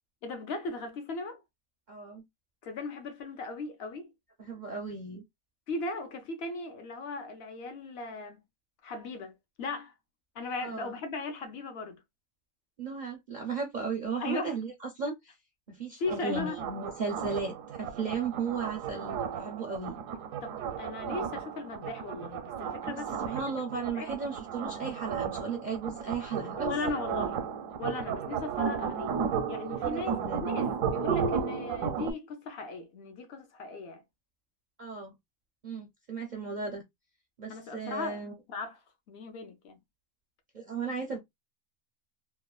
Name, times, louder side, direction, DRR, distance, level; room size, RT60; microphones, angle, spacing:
voice 1, 0.2-1.4 2.6-4.1 5.7-8.4 8.8-9.9 10.3-12.0 14.2-14.6 16.0-16.6 20.4-24.2 26.6-27.4 27.8-29.2 29.5-34.0 37.5-38.2 38.5-38.8 39.1-39.8, left 3 dB, 55° left, 0.8 m, -37 dB
voice 2, 1.9-2.2 4.4-5.2 10.6-10.9 12.8-15.4 15.7-20.0 22.8-26.8 29.8-30.5 34.8-35.1 35.6-36.8 37.4-38.3 40.5-41.2, right 5 dB, 55° right, 0.5 m, -35 dB
sound 1, 16.1-32.1, right 7 dB, 80° right, 1.0 m, -34 dB
3.0 x 2.1 x 2.2 m
omnidirectional pair, 1.4 m